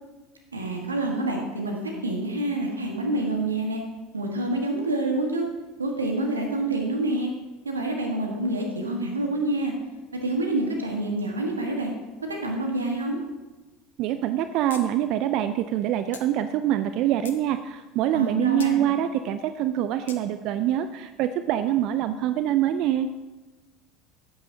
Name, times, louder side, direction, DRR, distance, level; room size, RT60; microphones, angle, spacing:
voice 1, 0.5-3.8 4.1-5.5 5.8-7.3 7.6-9.7 10.2-11.9 12.3-13.2 18.1-18.8, right 1 dB, 85° right, 2 dB, 1.3 m, -27 dB
voice 2, 14.0-23.1, right 11 dB, 55° right, 10 dB, 0.3 m, -25 dB
sound 1, 14.7-14.8 15.1-15.2 16.1-16.3 16.9-17.4 18.6-18.7 20.1-20.2, left 7 dB, 75° left, 0.6 m, -41 dB
10.5 x 8.6 x 2.7 m, 1.2 s
figure-of-eight pair, 70°, 0 cm